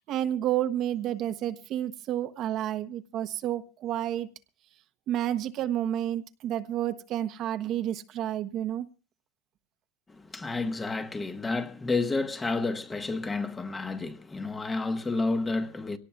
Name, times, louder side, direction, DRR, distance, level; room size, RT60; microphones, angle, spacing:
voice 1, 0.1-4.3 5.1-8.9, right 11 dB, 45° right, 0.9 m, -30 dB
voice 2, 10.1-16.0, left 3 dB, 15° left, 1.2 m, -30 dB
24.5 x 18.0 x 2.3 m
supercardioid pair, 135°, 0 cm